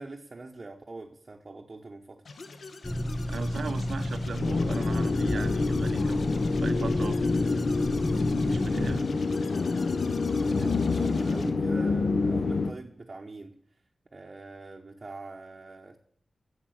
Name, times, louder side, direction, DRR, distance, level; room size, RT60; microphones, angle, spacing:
voice 1, 0.0-2.2 10.6-13.6 14.1-16.0, right 3 dB, 30° right, 2 dB, 0.8 m, -43 dB
sound 1, 2.2-11.5, left 3 dB, 65° left, 1.1 m, -42 dB
sound 2, 2.8-9.0, equal, 5° left, 0.9 m, -32 dB
voice 2, 3.3-7.2 8.4-9.1, right 5 dB, 70° right, 11 dB, 0.7 m, -38 dB
sound 3, 4.4-12.7, left 4 dB, 45° left, 0.5 m, -27 dB
10.0 x 7.5 x 7.8 m, 0.65 s
wide cardioid pair, 170°, 0 cm